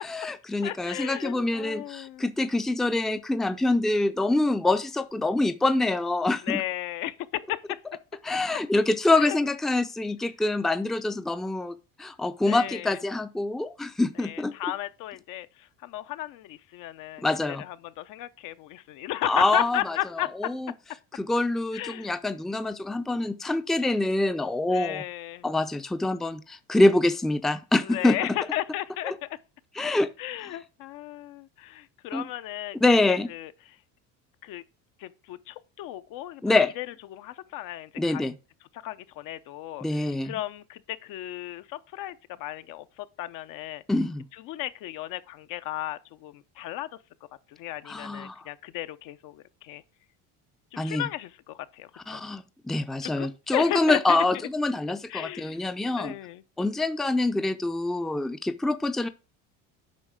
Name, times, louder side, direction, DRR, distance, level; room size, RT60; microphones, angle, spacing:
voice 1, 0.0-6.6 8.2-11.7 12.0-14.5 17.2-17.6 19.3-20.0 20.4-20.7 21.1-25.0 25.4-28.2 29.0-29.1 29.8-30.1 32.1-32.3 32.8-33.3 36.4-36.7 38.0-38.3 39.8-40.4 43.9-44.2 47.8-48.4 50.8-51.1 52.1-56.1 56.6-59.1, left 2 dB, ahead, 0.5 m, -25 dB
voice 2, 0.6-2.3 6.4-7.8 9.1-9.4 12.5-13.0 14.2-20.3 21.7-22.1 24.7-25.5 27.8-29.4 30.2-32.8 33.1-33.8 34.4-34.6 35.0-36.4 36.8-36.9 37.1-38.2 38.8-43.8 44.4-46.9 47.5-49.8 50.7-52.2 53.0-54.2 55.1-55.6 56.0-56.4, left 14 dB, 65° left, 0.8 m, -35 dB
8.5 x 5.5 x 3.6 m
supercardioid pair, 115°, 35 cm